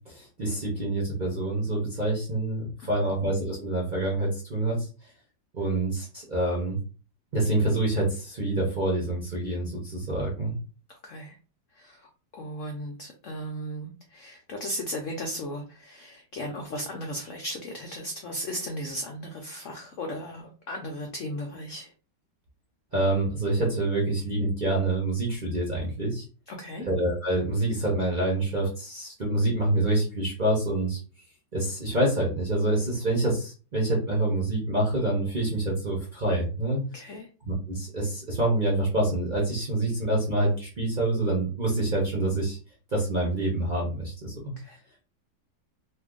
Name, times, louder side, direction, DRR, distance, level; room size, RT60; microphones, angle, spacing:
voice 1, 0.1-4.9 5.5-6.8 7.3-10.5 22.9-26.2 26.9-31.0 31.5-36.8 37.5-42.6 42.9-44.5, right 2 dB, 45° right, -4 dB, 0.6 m, -26 dB
voice 2, 10.9-11.3 11.7-21.9 26.5-26.9 36.9-37.3 44.6-44.8, equal, 80° left, 2 dB, 0.7 m, -36 dB
2.6 x 2.6 x 3.6 m, 0.36 s
omnidirectional pair, 2.0 m